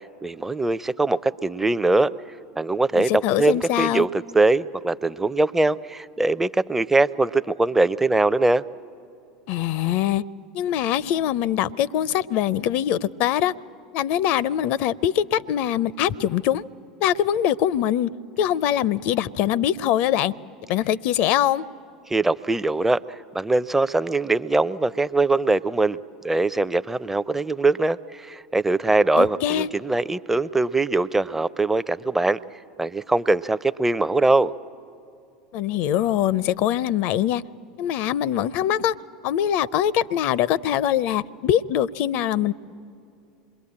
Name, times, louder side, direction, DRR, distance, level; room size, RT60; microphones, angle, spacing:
voice 1, 0.2-2.1 2.6-8.6 22.1-26.0 26.2-32.4 32.8-34.5, right 2 dB, 10° right, 0.5 m, -22 dB
voice 2, 2.9-4.1 9.5-10.2 10.5-13.5 13.9-16.6 17.0-18.1 18.4-20.3 20.7-21.6 29.1-29.7 35.5-37.4 37.8-38.9 39.2-42.5, left 11 dB, 55° left, 0.5 m, -23 dB
27.0 x 22.0 x 8.7 m
figure-of-eight pair, 80°, 3 cm